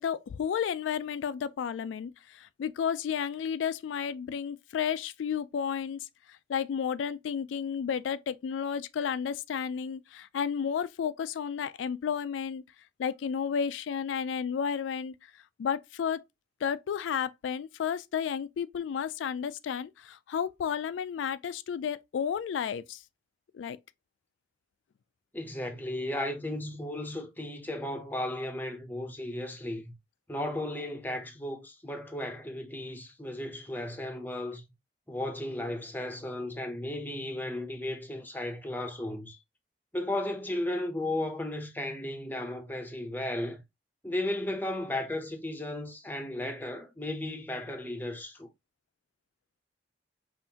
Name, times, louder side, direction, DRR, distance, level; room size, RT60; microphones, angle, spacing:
voice 1, 0.0-6.0 6.3-12.6 13.0-15.1 15.6-16.2 16.6-23.0 23.5-23.8, left 7 dB, 85° left, 0.3 m, -32 dB
voice 2, 25.3-29.9 30.3-34.6 35.1-39.4 39.9-43.6 44.0-48.5, left 1 dB, 10° left, 0.7 m, -35 dB
5.5 x 2.5 x 2.8 m
head